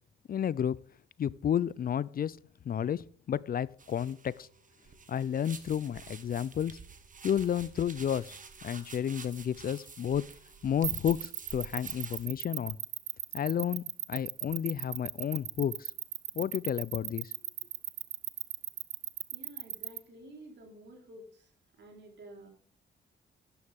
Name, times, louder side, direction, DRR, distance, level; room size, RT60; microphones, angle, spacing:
voice 1, 0.3-0.8 1.2-2.4 2.7-4.5 5.1-6.8 7.2-8.4 8.6-10.3 10.6-12.8 13.3-15.9 16.4-17.3, left 9 dB, 50° left, 0.4 m, -31 dB
sound 1, 3.8-12.3, right 5 dB, 45° right, 1.6 m, -49 dB
sound 2, 10.8-20.0, right 13 dB, 85° right, 0.7 m, -36 dB
voice 2, 19.3-21.5 21.8-22.5, right 1 dB, 65° right, 4.1 m, -51 dB
12.5 x 9.8 x 3.6 m
cardioid pair, 65°, 19 cm